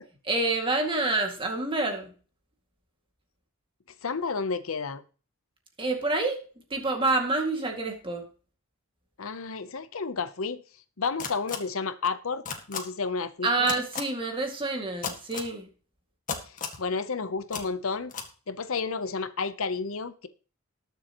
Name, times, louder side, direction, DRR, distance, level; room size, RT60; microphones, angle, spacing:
voice 1, 0.2-2.1 5.8-6.4 6.7-8.3 13.4-15.7, right 2 dB, 25° right, 2.2 m, -27 dB
voice 2, 4.0-5.0 9.2-10.6 11.0-12.4 12.7-13.7 16.4-18.1 18.5-20.3, left 4 dB, 70° left, 0.8 m, -31 dB
sound 1, 11.2-11.6 12.4-12.8 13.6-14.0 15.0-15.5 16.3-16.8 17.5-17.6 18.1-18.3, left 6 dB, 40° left, 1.8 m, -33 dB
20.0 x 7.0 x 3.0 m
head